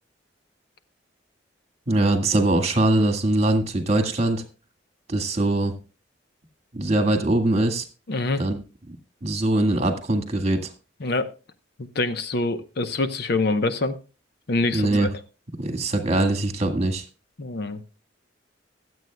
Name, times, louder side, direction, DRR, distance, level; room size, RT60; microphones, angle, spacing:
voice 1, 1.9-4.4 5.1-5.7 6.7-7.8 8.4-8.6 9.2-10.7 14.7-15.1 15.6-17.0, right 2 dB, 35° right, 5 dB, 1.7 m, -22 dB
voice 2, 8.1-8.5 11.0-11.3 11.8-14.0 14.5-15.1 17.4-17.8, left 2 dB, 60° left, 10 dB, 0.9 m, -25 dB
23.5 x 8.1 x 2.2 m, 0.32 s
head